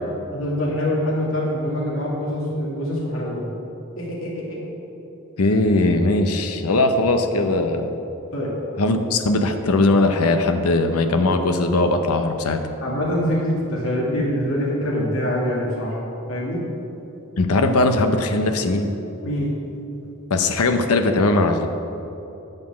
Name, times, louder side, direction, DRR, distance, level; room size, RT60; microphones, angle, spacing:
voice 1, 0.3-3.5 4.0-4.6 8.3-8.5 12.8-16.0 16.3-16.6 19.2-19.5, equal, 70° left, -4 dB, 2.1 m, -24 dB
voice 2, 5.4-7.9 8.8-12.6 17.4-18.9 20.3-21.7, left 2 dB, 90° left, 6 dB, 0.7 m, -19 dB
9.5 x 5.3 x 7.2 m, 3.0 s
head